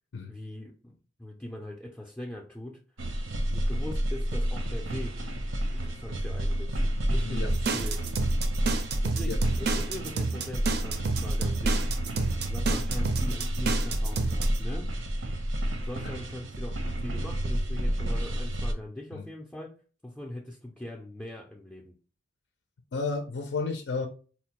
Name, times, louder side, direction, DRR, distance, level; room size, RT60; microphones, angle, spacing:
voice 1, 0.3-2.8 3.5-5.2 5.8-6.8 7.1-8.0 9.0-12.0 12.4-14.9 15.7-16.7 17.0-19.7 20.0-21.9, left 1 dB, 10° left, -1 dB, 0.4 m, -41 dB
sound 1, 3.0-18.7, equal, 85° right, 0.7 m, -30 dB
sound 2, 7.5-14.6, right 4 dB, 55° right, 0.4 m, -30 dB
voice 2, 22.9-24.1, left 4 dB, 65° left, 3 dB, 0.4 m, -32 dB
4.2 x 2.1 x 2.9 m, 0.38 s
head